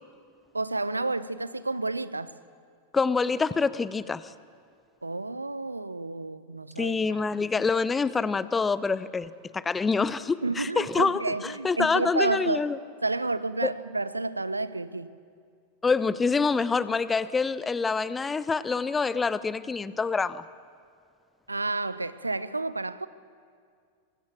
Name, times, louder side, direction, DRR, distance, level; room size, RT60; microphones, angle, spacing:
voice 1, 0.5-2.3 5.0-7.2 10.4-12.6 13.0-15.1 21.5-23.1, right 2 dB, 80° right, 0.8 m, -30 dB
voice 2, 2.9-4.3 6.8-11.2 11.6-12.8 13.6-13.7 15.8-20.4, left 4 dB, 15° left, 0.7 m, -26 dB
24.0 x 24.0 x 7.3 m
figure-of-eight pair, 90°, 0 cm